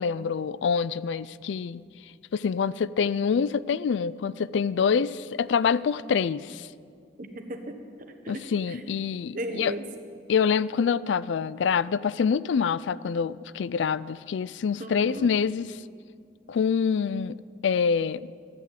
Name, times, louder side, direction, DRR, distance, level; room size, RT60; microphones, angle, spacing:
voice 1, 0.0-1.8 2.3-6.7 8.3-9.7 10.3-15.8 16.5-17.4 17.6-18.3, left 6 dB, 85° left, 19 dB, 0.4 m, -26 dB
voice 2, 7.2-8.9 9.3-9.8 14.8-15.3, right 1 dB, 45° right, 6 dB, 1.3 m, -37 dB
13.5 x 8.9 x 9.2 m, 2.3 s
head